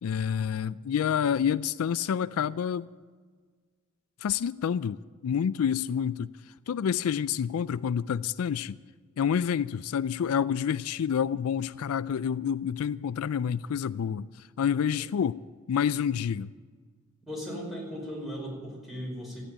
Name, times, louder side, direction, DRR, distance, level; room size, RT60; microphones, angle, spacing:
voice 1, 0.0-2.9 4.2-5.0 5.2-6.3 6.7-8.8 9.2-14.3 14.6-15.4 15.7-16.5, left 8 dB, 80° left, 0.4 m, -28 dB
voice 2, 17.3-19.4, equal, ahead, 5.2 m, -37 dB
14.5 x 10.0 x 9.0 m
head